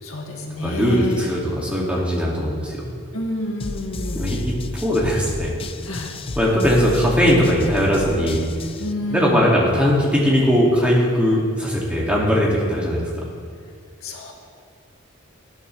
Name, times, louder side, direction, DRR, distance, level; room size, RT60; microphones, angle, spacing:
voice 1, 0.0-1.3 3.1-4.3 5.8-6.1 8.8-9.5 14.0-14.3, left 1 dB, 80° left, 0 dB, 2.0 m, -29 dB
voice 2, 0.6-2.9 4.1-5.6 6.4-8.4 9.1-13.1, equal, 5° right, -4 dB, 2.2 m, -19 dB
sound 1, 3.6-8.9, left 2 dB, 25° left, 0.4 m, -32 dB
19.5 x 11.0 x 3.3 m, 2.1 s
head